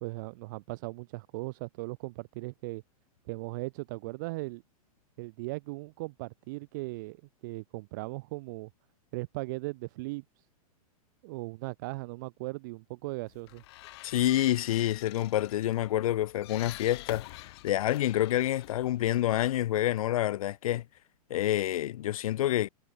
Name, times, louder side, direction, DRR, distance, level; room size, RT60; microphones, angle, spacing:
voice 1, 0.0-2.8 3.3-4.6 5.2-8.7 9.1-10.4 11.2-13.6, right 24 dB, 30° right, 0.4 m, -38 dB
sound 1, 13.3-19.8, left 20 dB, 45° left, 1.4 m, -48 dB
voice 2, 14.0-20.8 21.3-22.7, left 13 dB, 65° left, 0.6 m, -28 dB
hypercardioid pair, 160°, 19 cm